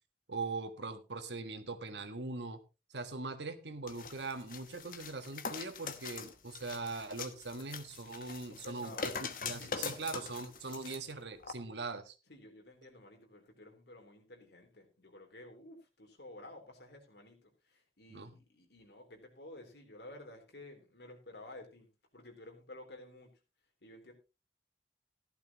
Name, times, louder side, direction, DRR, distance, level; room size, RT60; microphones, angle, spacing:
voice 1, 0.3-2.6 2.9-9.1 9.4-12.2 18.1-18.3, right 3 dB, 85° right, 9 dB, 1.5 m, -41 dB
sound 1, 3.9-11.0 11.4-11.5, left 5 dB, 50° left, 1.2 m, -43 dB
voice 2, 8.5-9.1 9.6-10.1 12.3-23.4 23.8-24.1, left 1 dB, 75° left, 3 dB, 3.6 m, -53 dB
15.0 x 11.5 x 3.0 m, 0.28 s
head